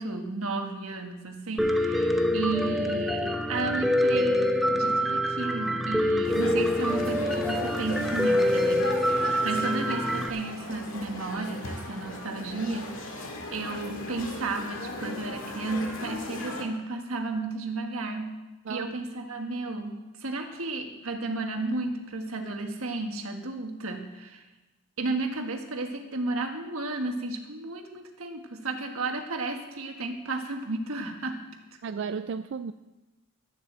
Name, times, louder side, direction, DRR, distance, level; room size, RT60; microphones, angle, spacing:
voice 1, 0.0-13.2 13.5-18.4 18.7-24.5 25.0-31.4, right 3 dB, 90° right, 4 dB, 1.6 m, -33 dB
Piano, 1.6-10.3, left 1 dB, ahead, 0.7 m, -25 dB
sound 1, 6.2-16.6, left 1 dB, 75° left, 1.9 m, -37 dB
voice 2, 31.8-32.7, right 6 dB, 55° right, 11 dB, 0.3 m, -33 dB
12.0 x 7.5 x 7.4 m, 1.1 s
head